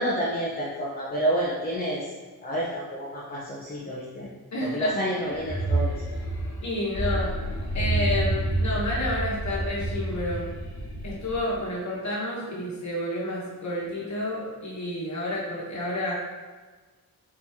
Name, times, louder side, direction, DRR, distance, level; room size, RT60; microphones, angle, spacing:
voice 1, 0.0-2.1 2.4-4.3 4.6-5.9, right 1 dB, 25° left, -6 dB, 0.5 m, -29 dB
voice 2, 4.5-5.0 6.6-7.3 7.7-10.5 11.0-16.1, left 1 dB, 45° left, -6 dB, 1.1 m, -30 dB
sound 1, 5.4-11.6, right 2 dB, 70° left, 1.0 m, -29 dB
4.2 x 2.9 x 3.5 m, 1.3 s
wide cardioid pair, 180°, 38 cm